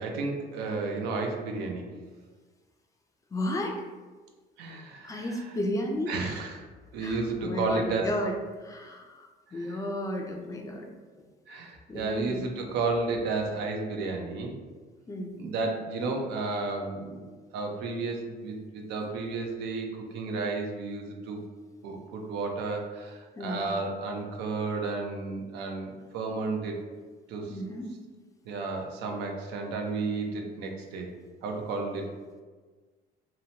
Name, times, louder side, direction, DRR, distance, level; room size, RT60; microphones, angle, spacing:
voice 1, 0.0-1.9 4.6-5.5 6.1-6.6 6.9-8.1 9.5-9.8 11.5-14.5 15.4-17.2 17.5-21.4 21.8-26.8 27.3-27.6 28.5-31.1 31.4-32.1, right 3 dB, 85° right, 2 dB, 0.5 m, -32 dB
voice 2, 3.3-3.8 5.0-6.1 7.0-10.9 11.9-12.4 15.1-15.4 23.4-23.7 27.5-27.9, left 1 dB, 20° left, 2 dB, 0.3 m, -33 dB
2.8 x 2.1 x 2.7 m, 1.4 s
cardioid pair, 110°, 17 cm